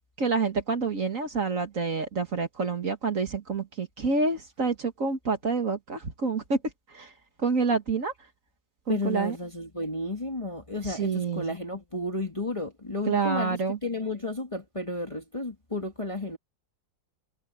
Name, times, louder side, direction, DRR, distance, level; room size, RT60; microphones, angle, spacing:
voice 1, 0.0-6.6 6.9-7.1 7.4-8.1 8.9-9.4 10.8-11.5 13.1-13.8, right 4 dB, 45° right, 2.0 m, -28 dB
voice 2, 8.9-16.4, left 2 dB, 20° left, 1.7 m, -32 dB
omnidirectional pair, 2.0 m